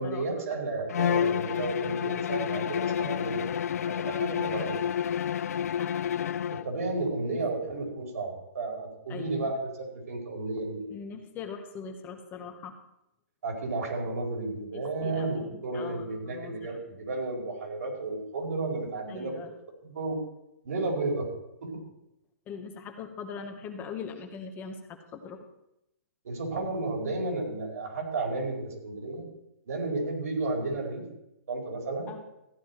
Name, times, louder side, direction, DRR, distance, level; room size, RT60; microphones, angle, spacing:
voice 1, 0.0-3.5 3.9-4.8 6.5-10.8 13.4-19.4 19.8-20.2 20.6-21.3 21.6-21.7 26.2-29.2 29.7-31.0 31.5-32.1, right 3 dB, 75° right, -1 dB, 4.8 m, -32 dB
Bowed string instrument, 0.9-6.7, left 8 dB, 75° left, 0.4 m, -29 dB
voice 2, 9.1-9.5 10.9-12.8 14.7-16.8 19.1-19.5 22.5-25.4 32.1-32.2, left 6 dB, 20° left, 5 dB, 1.2 m, -41 dB
14.5 x 9.4 x 4.4 m, 0.86 s
hypercardioid pair, 140°, 8 cm